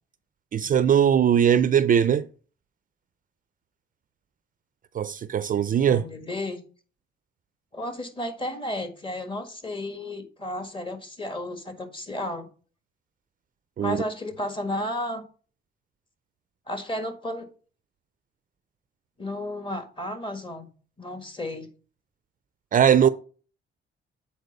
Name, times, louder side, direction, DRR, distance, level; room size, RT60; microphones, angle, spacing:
voice 1, 0.5-2.3 4.9-6.1 13.8-14.0 22.7-23.1, right 8 dB, 45° right, 0.4 m, -20 dB
voice 2, 5.9-6.6 7.7-12.5 13.8-15.2 16.7-17.5 19.2-20.7 21.0-21.7 23.0-23.1, left 1 dB, 25° left, 1.6 m, -33 dB
8.1 x 4.4 x 5.2 m
cardioid pair, 90°, 20 cm